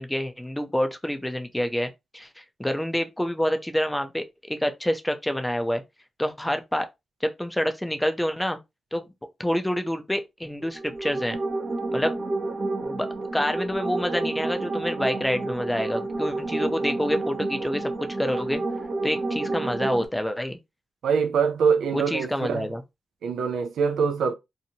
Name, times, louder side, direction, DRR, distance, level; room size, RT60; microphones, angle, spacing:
voice 1, 0.0-5.8 6.2-6.9 7.2-8.6 8.9-9.1 9.4-11.4 11.9-12.1 12.8-13.1 13.3-18.6 19.0-20.6 21.9-22.8, equal, 10° left, 0.6 m, -27 dB
sound 1, 10.6-20.0, right 2 dB, 45° right, 0.7 m, -29 dB
voice 2, 21.0-22.7 23.2-24.3, right 6 dB, 85° right, 0.4 m, -24 dB
2.7 x 2.1 x 2.8 m
cardioid pair, 55°, 0 cm